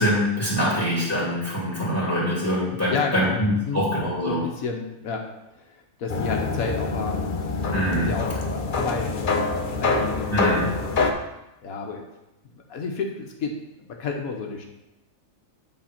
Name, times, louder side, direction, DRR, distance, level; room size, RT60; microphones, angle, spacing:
voice 1, 0.0-4.4 7.7-8.1 10.3-10.7, equal, 10° left, -7 dB, 2.4 m, -24 dB
voice 2, 2.9-3.9 4.3-5.3 5.7-7.3 7.9-11.0 11.6-12.0 12.5-13.5 13.8-14.6, left 5 dB, 90° left, 2 dB, 1.4 m, -31 dB
sound 1, 6.1-11.1, left 3 dB, 45° left, 0.8 m, -25 dB
8.6 x 4.0 x 5.8 m, 0.94 s
omnidirectional pair, 1.4 m